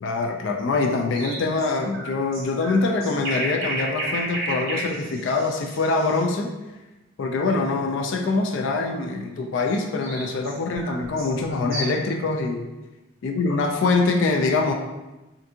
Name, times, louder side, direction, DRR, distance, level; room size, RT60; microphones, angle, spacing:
voice 1, 0.0-6.5 7.2-12.7 13.2-14.7, left 3 dB, 60° left, 2 dB, 0.3 m, -24 dB
sound 1, 1.1-6.2 9.7-12.1, right 1 dB, 45° right, 0.8 m, -32 dB
3.4 x 2.6 x 2.7 m, 1.1 s
head